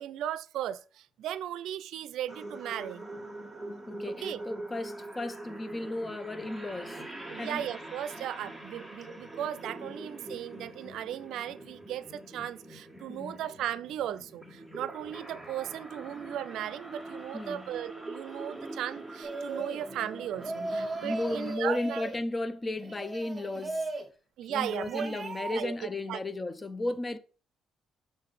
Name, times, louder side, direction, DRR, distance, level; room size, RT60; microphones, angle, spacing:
voice 1, 0.0-3.1 4.2-4.4 7.3-22.0 24.4-25.2 25.5-25.7 26.1-26.2, right 11 dB, 80° right, 0.4 m, -36 dB
sound 1, 2.3-21.6, right 2 dB, ahead, 1.7 m, -44 dB
voice 2, 3.9-7.0 7.3-7.7 13.1-13.4 17.3-17.7 20.6-23.9 24.5-27.2, left 2 dB, 25° left, 0.7 m, -35 dB
sound 2, 19.2-19.9 20.4-22.2 22.8-24.1 24.5-25.6, right 2 dB, 30° right, 1.2 m, -37 dB
6.3 x 3.9 x 4.8 m
cardioid pair, 90°, 0 cm